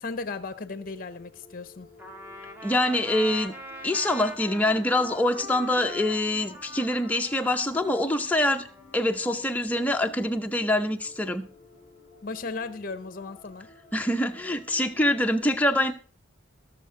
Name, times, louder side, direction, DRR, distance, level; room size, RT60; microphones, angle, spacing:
voice 1, 0.0-1.9 12.2-13.7, left 3 dB, 45° left, 0.7 m, -36 dB
sound 1, 0.7-15.3, left 2 dB, 25° left, 3.2 m, -53 dB
Trumpet, 2.0-9.1, left 1 dB, 10° right, 1.5 m, -43 dB
voice 2, 2.6-3.5 3.8-8.6 8.9-11.5 13.9-15.9, left 1 dB, 10° left, 0.6 m, -25 dB
17.5 x 6.5 x 3.7 m
head